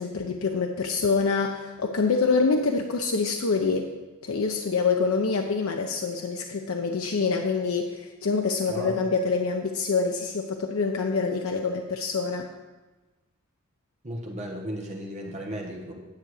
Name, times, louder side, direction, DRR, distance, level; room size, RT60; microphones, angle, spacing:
voice 1, 0.0-3.9 4.2-12.5, left 4 dB, 75° left, 3 dB, 0.6 m, -26 dB
voice 2, 8.7-9.0 14.0-15.9, equal, 30° right, 0 dB, 1.3 m, -35 dB
10.5 x 6.9 x 4.8 m, 1.2 s
head